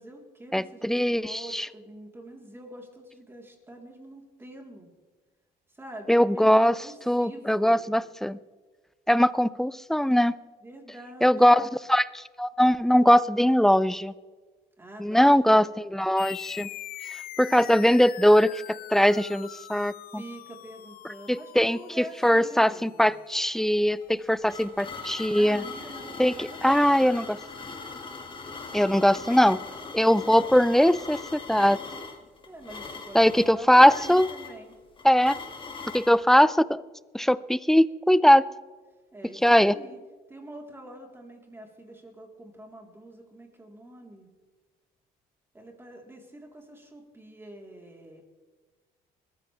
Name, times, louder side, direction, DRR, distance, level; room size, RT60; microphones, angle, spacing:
voice 1, 0.0-4.9 5.7-7.9 10.6-11.6 14.8-15.6 20.1-23.1 25.4-27.3 32.5-34.7 39.1-40.0 40.3-44.3 45.5-48.2, right 1 dB, 15° right, 0 dB, 3.9 m, -45 dB
voice 2, 0.5-1.7 6.1-6.8 7.1-8.4 9.1-10.4 11.2-14.1 15.0-15.7 15.9-16.7 17.4-20.2 21.3-25.7 26.2-27.4 28.7-29.6 29.9-31.8 33.1-34.3 35.0-35.4 35.9-36.8 37.1-38.5 39.4-39.8, equal, ahead, 17 dB, 0.4 m, -21 dB
sound 1, 16.2-25.1, left 12 dB, 60° left, 0.7 m, -44 dB
sound 2, 24.0-36.2, left 4 dB, 30° left, 2.2 m, -40 dB
21.0 x 15.0 x 3.5 m, 1.3 s
cardioid pair, 110°, 17 cm